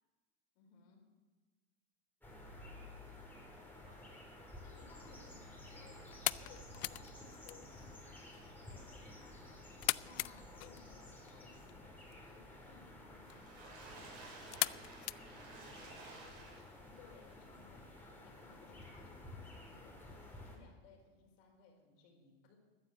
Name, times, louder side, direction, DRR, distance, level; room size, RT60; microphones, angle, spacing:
voice 1, 0.5-1.1 4.6-8.1 8.6-9.7 10.0-13.6 16.8-22.6, left 5 dB, 70° left, 2 dB, 4.7 m, -63 dB
sound 1, 2.2-20.6, left 1 dB, 5° left, 4.3 m, -53 dB
voice 2, 3.1-4.3 15.1-16.2 20.2-20.3, right 2 dB, 25° right, 1 dB, 5.9 m, -68 dB
sound 2, 4.7-16.1, left 24 dB, 50° left, 0.4 m, -44 dB
Water / Splash splatter, 13.1-17.0 17.5-17.6 18.0-18.1, right 3 dB, 65° right, 6.3 m, -54 dB
14.0 x 9.7 x 8.0 m, 1.3 s
hypercardioid pair, 100°, 31 cm